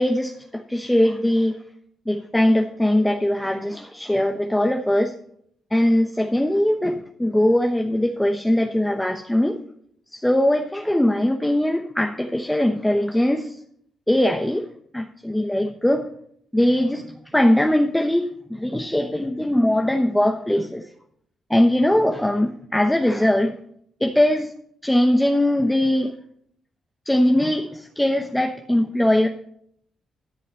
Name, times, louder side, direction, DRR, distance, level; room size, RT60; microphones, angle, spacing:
voice 1, 0.0-1.5 2.1-5.1 5.7-9.6 10.1-13.5 14.1-14.7 14.9-16.1 16.5-17.1 17.3-20.8 21.5-23.5 24.0-24.5 24.8-26.1 27.1-29.3, left 1 dB, 5° left, 5 dB, 0.9 m, -20 dB
13.0 x 5.5 x 7.6 m, 0.67 s
cardioid pair, 85°, 0 cm